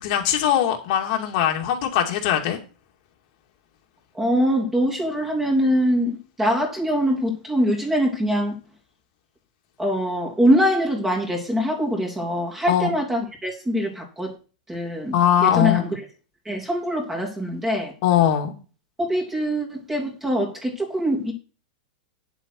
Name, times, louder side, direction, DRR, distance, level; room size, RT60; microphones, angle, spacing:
voice 1, 0.0-2.6 12.7-13.0 15.1-15.8 18.0-18.5, left 10 dB, 50° left, 2.5 m, -20 dB
voice 2, 4.1-8.5 9.8-14.3 14.7-15.9 16.4-17.9 19.0-21.3, equal, 10° right, 3.1 m, -23 dB
10.5 x 7.8 x 4.7 m
supercardioid pair, 155°, 5 cm